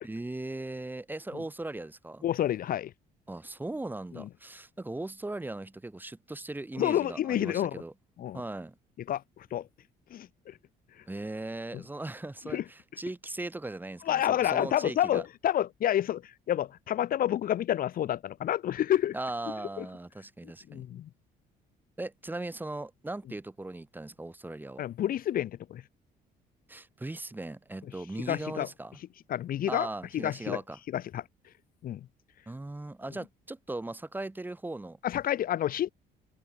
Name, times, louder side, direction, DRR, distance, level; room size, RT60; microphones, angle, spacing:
voice 1, 0.0-2.2 3.3-7.9 8.3-8.7 11.1-15.2 19.1-20.8 22.0-24.8 26.7-29.0 29.7-30.8 32.5-35.0, right 2 dB, 10° right, 3.9 m, -38 dB
voice 2, 2.2-2.9 4.1-4.3 6.8-7.8 8.2-8.4 9.1-9.7 10.1-10.6 11.7-11.8 12.5-12.6 14.0-19.1 19.8-19.9 20.4-21.1 24.8-25.8 28.3-28.7 29.3-29.9 30.1-30.6 30.9-31.2 31.8-32.1 35.0-35.9, left 11 dB, 60° left, 1.6 m, -29 dB
cardioid pair, 110°, 17 cm